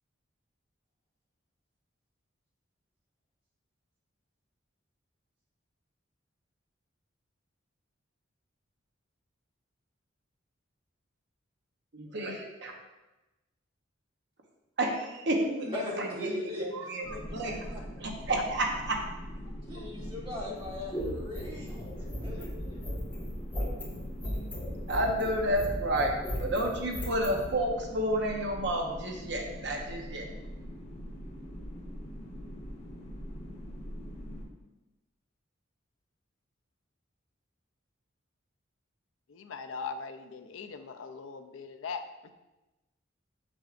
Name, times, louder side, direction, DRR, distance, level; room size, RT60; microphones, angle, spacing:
voice 1, 11.9-12.7 14.8-17.5 18.0-19.0 24.2-24.5 24.9-30.3, right 1 dB, 60° right, 1 dB, 0.9 m, -31 dB
voice 2, 15.7-17.8 19.6-22.8, left 2 dB, 25° right, -4 dB, 1.6 m, -40 dB
sound 1, 17.0-34.5, equal, 35° left, 1.1 m, -42 dB
sound 2, 20.6-27.4, equal, 10° left, 2.3 m, -37 dB
voice 3, 39.3-42.3, left 5 dB, 85° left, 8 dB, 0.5 m, -40 dB
7.3 x 6.0 x 2.5 m, 1.1 s
head